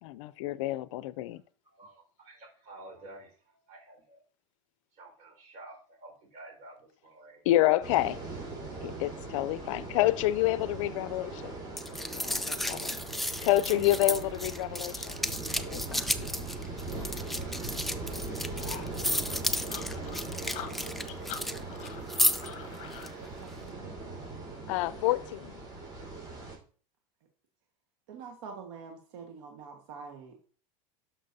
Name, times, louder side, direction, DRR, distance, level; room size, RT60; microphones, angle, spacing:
voice 1, 0.0-1.4 7.5-8.2 8.8-11.5 12.1-13.0 13.4-15.2 15.7-16.3 24.7-25.5, left 15 dB, 70° left, 0.5 m, -28 dB
voice 2, 1.6-4.2 4.9-7.4 7.8-8.0, right 2 dB, 45° right, 4.7 m, -51 dB
sound 1, 7.8-26.6, right 3 dB, 25° right, 4.4 m, -40 dB
sound 2, 11.8-21.6 21.9-22.5 22.9-23.1, left 1 dB, ahead, 0.4 m, -32 dB
voice 3, 13.7-14.3 23.2-24.0 28.1-30.5, right 5 dB, 70° right, 1.5 m, -45 dB
sound 3, 18.6-23.1, left 10 dB, 45° left, 1.1 m, -44 dB
12.0 x 6.0 x 2.7 m
supercardioid pair, 130°, 17 cm